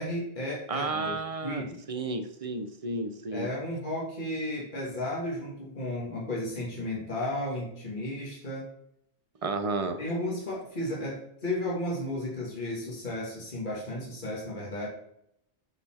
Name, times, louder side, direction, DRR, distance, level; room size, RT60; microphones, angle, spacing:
voice 1, 0.0-1.8 3.3-8.7 10.0-14.9, left 1 dB, 50° left, -5 dB, 2.1 m, -34 dB
voice 2, 0.7-3.5 9.4-10.0, right 3 dB, 35° right, 8 dB, 0.9 m, -32 dB
11.0 x 4.3 x 4.4 m, 0.74 s
omnidirectional pair, 1.1 m